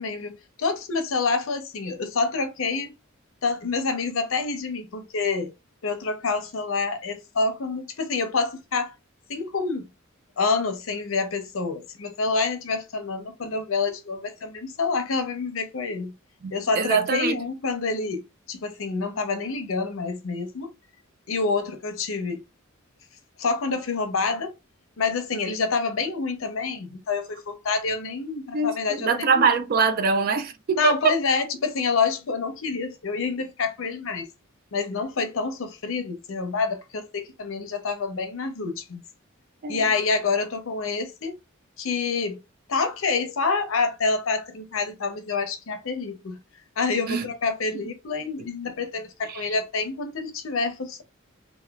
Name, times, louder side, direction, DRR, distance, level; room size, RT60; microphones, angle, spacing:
voice 1, 0.0-2.9 3.4-5.5 5.8-8.9 9.3-9.9 10.4-16.1 16.5-20.7 21.3-22.4 23.4-24.5 25.0-29.5 30.8-34.3 34.7-39.0 39.7-41.3 41.8-42.4 42.7-46.4 46.8-51.0, left 4 dB, 75° left, 0.6 m, -27 dB
voice 2, 16.4-17.4 28.5-31.2 39.6-39.9 47.1-47.3 49.3-49.5, right 5 dB, 45° right, 0.4 m, -23 dB
3.0 x 2.2 x 2.3 m
head